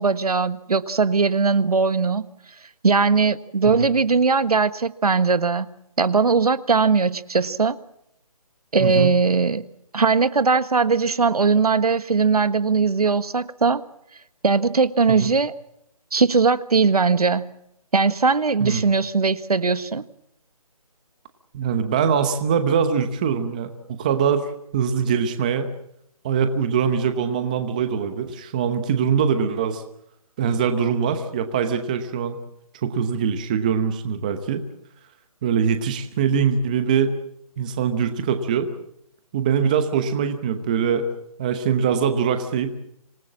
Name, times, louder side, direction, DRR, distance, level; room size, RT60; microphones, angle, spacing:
voice 1, 0.0-2.3 2.8-5.7 6.0-7.8 8.7-9.6 9.9-13.8 14.4-15.5 16.1-17.5 17.9-20.0, right 4 dB, 75° right, 13 dB, 1.4 m, -20 dB
voice 2, 8.8-9.1 15.1-15.3 18.6-18.8 21.5-25.7 26.2-29.8 30.4-32.4 32.8-34.6 35.4-37.1 37.6-38.7 39.3-41.1 41.4-42.7, right 7 dB, 15° right, 8 dB, 0.8 m, -23 dB
26.0 x 19.0 x 7.4 m, 0.76 s
hypercardioid pair, 170°, 19 cm